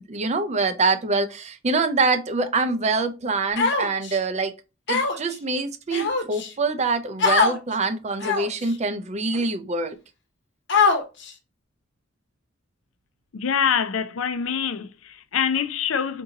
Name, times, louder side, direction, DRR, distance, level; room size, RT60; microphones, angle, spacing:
voice 1, 0.0-4.5 4.9-10.0, right 3 dB, 35° right, 0.5 m, -25 dB
Human voice, 3.6-4.2 4.9-5.3 5.9-6.5 7.2-7.6 8.2-8.6 9.3-9.4 10.7-11.3, left 4 dB, 60° left, 0.8 m, -21 dB
voice 2, 13.3-16.2, left 7 dB, 80° left, 0.5 m, -25 dB
3.8 x 2.7 x 3.9 m
head